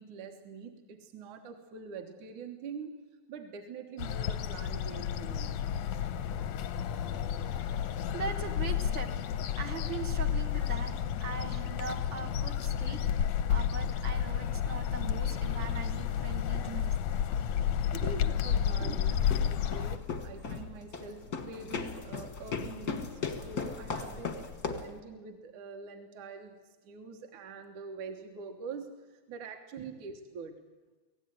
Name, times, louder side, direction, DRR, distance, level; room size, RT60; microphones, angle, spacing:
voice 1, 0.0-2.9 3.3-5.5 16.7-16.8 17.9-19.2 19.5-26.6 26.8-30.6, right 4 dB, 60° right, 4 dB, 2.5 m, -44 dB
sound 1, 4.0-20.0, left 8 dB, 75° left, 1.6 m, -31 dB
voice 2, 8.1-10.9 11.2-13.0 13.5-16.9 18.0-18.1 18.8-19.0 29.8-29.9, right 5 dB, 85° right, 3 dB, 1.0 m, -41 dB
sound 2, 19.1-25.0, left 5 dB, 55° left, 1.0 m, -38 dB
25.0 x 17.0 x 9.3 m, 1.3 s
omnidirectional pair, 4.2 m